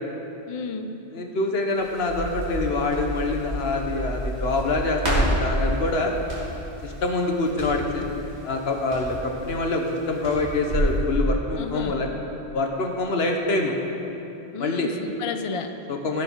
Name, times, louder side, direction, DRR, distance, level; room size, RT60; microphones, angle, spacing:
voice 1, 0.5-1.0 11.5-12.0 14.5-15.7, left 4 dB, 40° left, 7 dB, 0.5 m, -32 dB
voice 2, 1.1-6.1 6.8-8.0 8.4-12.1 12.5-13.7 14.6-14.9 15.9-16.2, left 2 dB, 70° left, 2 dB, 1.3 m, -25 dB
Crackle, 1.7-11.0, right 1 dB, 80° right, 2.9 m, -30 dB
17.0 x 6.7 x 4.6 m, 2.9 s
omnidirectional pair, 1.1 m